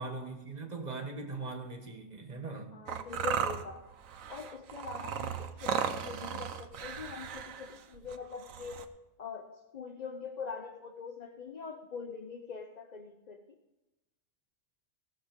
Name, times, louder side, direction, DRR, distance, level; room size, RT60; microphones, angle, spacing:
voice 1, 0.0-2.7, right 3 dB, 35° right, 1.5 m, -40 dB
voice 2, 2.7-3.9 4.3-8.9 9.2-13.6, left 5 dB, 35° left, 0.9 m, -43 dB
sound 1, 2.9-8.8, right 8 dB, 90° right, 1.2 m, -36 dB
17.5 x 7.0 x 5.2 m
omnidirectional pair, 1.4 m